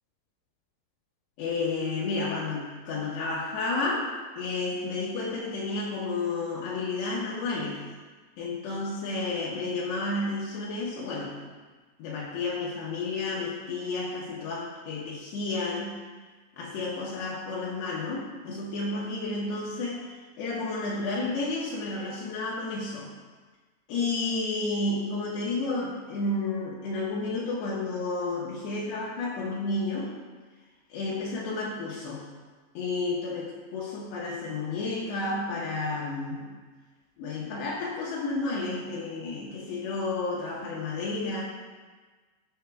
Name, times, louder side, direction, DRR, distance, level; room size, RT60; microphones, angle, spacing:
voice 1, 1.4-4.1 4.4-7.8 8.4-11.3 12.0-16.0 16.6-20.1 20.4-23.1 23.9-30.1 30.9-32.2 32.7-36.5 37.2-41.4, left 3 dB, 75° left, -5 dB, 3.1 m, -31 dB
13.5 x 8.0 x 2.3 m, 1.4 s
omnidirectional pair, 5.1 m